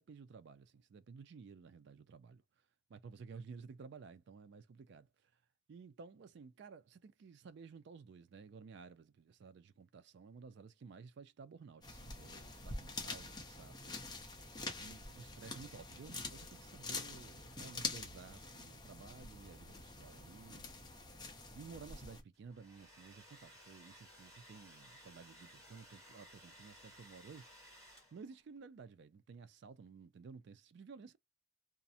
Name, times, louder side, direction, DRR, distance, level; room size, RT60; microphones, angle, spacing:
voice 1, 0.0-2.4 2.9-5.3 5.7-14.1 14.8-20.9 21.3-31.2, right 5 dB, 55° right, 0.3 m, -54 dB
sound 1, 11.8-22.2, left 3 dB, 20° left, 0.5 m, -46 dB
Domestic sounds home sounds, 22.3-28.4, equal, 15° right, 1.3 m, -59 dB
2.4 x 2.0 x 2.6 m
head